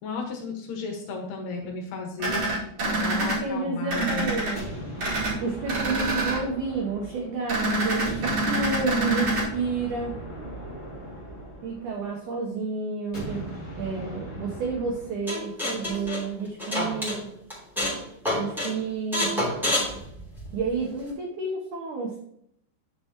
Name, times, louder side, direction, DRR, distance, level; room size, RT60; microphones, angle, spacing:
voice 1, 0.0-2.5 2.8-4.3, left 4 dB, 70° left, 1 dB, 3.3 m, -34 dB
sound 1, 2.2-3.4 3.9-4.5 5.0-5.3 5.7-6.4 7.5-9.4, right 2 dB, 40° right, 2.5 m, -26 dB
voice 2, 3.1-4.7 5.4-10.2 11.6-13.4 13.7-17.3 18.4-19.4 20.5-22.2, right 4 dB, 90° right, 0 dB, 1.7 m, -30 dB
sound 2, 4.5-7.6 8.0-12.3 13.1-15.2, right 1 dB, 25° left, 1.5 m, -39 dB
sound 3, 15.3-17.2 17.5-18.0 18.2-18.7 19.1-20.7, left 1 dB, ahead, 1.7 m, -27 dB
8.9 x 6.8 x 2.9 m, 0.71 s
omnidirectional pair, 4.9 m